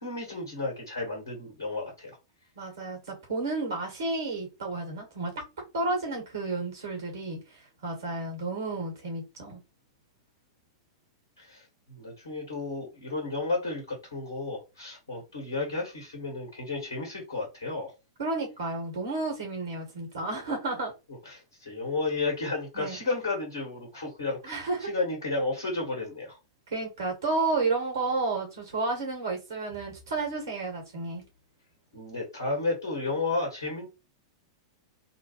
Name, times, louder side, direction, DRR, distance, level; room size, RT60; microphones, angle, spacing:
voice 1, 0.0-2.2 11.4-11.6 11.9-17.9 21.2-26.4 31.9-33.9, left 3 dB, 70° left, 1.5 m, -32 dB
voice 2, 2.5-5.4 5.7-7.4 7.8-9.6 18.2-20.9 22.7-23.0 24.4-24.9 26.7-31.2, right 3 dB, 65° right, 1.6 m, -31 dB
3.6 x 2.3 x 3.0 m
figure-of-eight pair, 95°, 2 cm